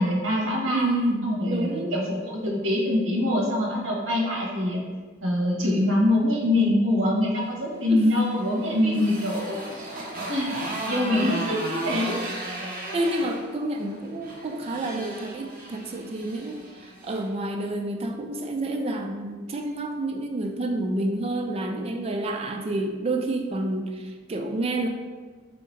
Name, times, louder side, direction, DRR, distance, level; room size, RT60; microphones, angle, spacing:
voice 1, 0.0-0.9 1.2-4.8 5.2-9.9 10.3-10.6 10.9-12.4, left 1 dB, 80° right, -2 dB, 1.0 m, -24 dB
voice 2, 0.7-1.9 7.9-8.1 8.7-9.1 12.7-24.9, right 2 dB, 30° right, 3 dB, 0.3 m, -29 dB
Motorcycle, 7.8-17.3, right 1 dB, 45° right, 0.8 m, -36 dB
3.5 x 2.8 x 4.3 m, 1.4 s
head